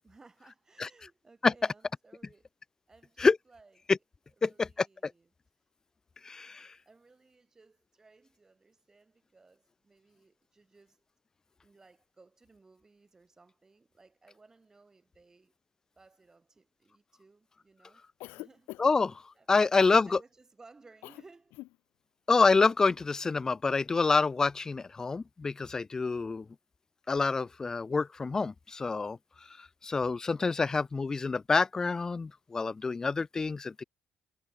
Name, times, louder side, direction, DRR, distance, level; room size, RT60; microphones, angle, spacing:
voice 1, 0.0-2.5 2.9-3.8 4.4-5.3 6.9-11.0 11.6-15.5 16.0-18.0 18.4-18.7 19.4-21.6 30.5-30.9, right 3 dB, 15° right, 4.2 m, -60 dB
voice 2, 4.4-5.1 6.2-6.7 18.8-20.2 22.3-26.5 27.1-29.2 29.6-33.8, left 4 dB, 15° left, 0.3 m, -27 dB
Cough, 18.2-19.1 19.8-20.0 21.0-21.2 21.5-21.7, left 20 dB, 90° left, 0.7 m, -44 dB
cardioid pair, 145°, 3 cm